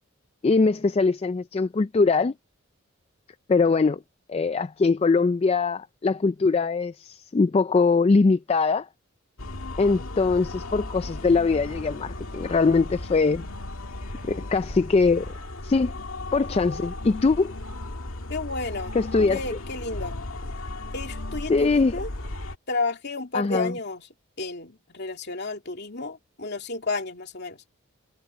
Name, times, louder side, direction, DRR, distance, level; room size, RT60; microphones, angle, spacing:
voice 1, 0.4-2.3 3.5-4.0 4.3-8.9 9.8-13.4 14.3-15.3 15.6-15.9 16.3-17.5 18.9-19.4 21.5-22.0 23.3-23.7, left 4 dB, 30° left, 0.3 m, -22 dB
sound 1, 9.4-22.6, left 2 dB, 75° left, 1.9 m, -36 dB
voice 2, 18.3-18.9 19.3-20.2 20.9-22.1 22.7-24.1 24.4-27.6, left 3 dB, 50° left, 2.9 m, -32 dB
head